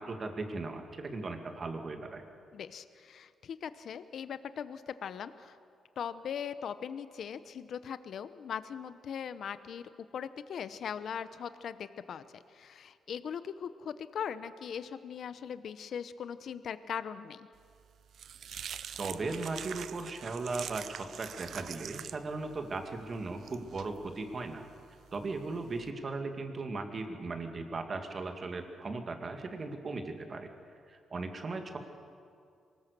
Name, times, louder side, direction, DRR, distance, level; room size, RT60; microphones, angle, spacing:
voice 1, 0.0-2.2 19.0-24.6 25.1-30.5 30.9-31.8, right 3 dB, 35° right, 5 dB, 2.2 m, -37 dB
voice 2, 2.5-5.6 6.0-17.5, left 8 dB, 60° left, 13 dB, 0.8 m, -40 dB
sound 1, 17.6-25.9, right 8 dB, 60° right, 0.6 m, -45 dB
24.0 x 20.5 x 6.8 m, 2.4 s
cardioid pair, 120°, 0 cm